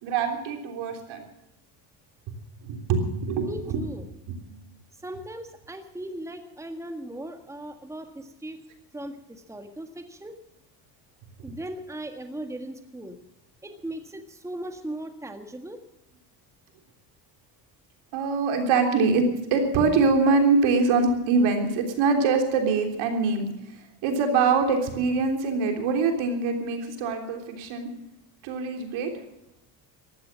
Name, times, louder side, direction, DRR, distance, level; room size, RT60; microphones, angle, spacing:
voice 1, 0.0-1.2 2.6-3.8 18.1-19.3 19.5-23.5 24.0-27.9 28.4-29.1, right 4 dB, 70° right, 4 dB, 3.5 m, -23 dB
voice 2, 3.4-4.1 5.0-8.6 8.9-10.3 11.4-13.2 13.6-15.8, right 1 dB, 5° right, 6 dB, 1.6 m, -38 dB
14.5 x 12.0 x 7.3 m, 0.90 s
supercardioid pair, 95°, 49 cm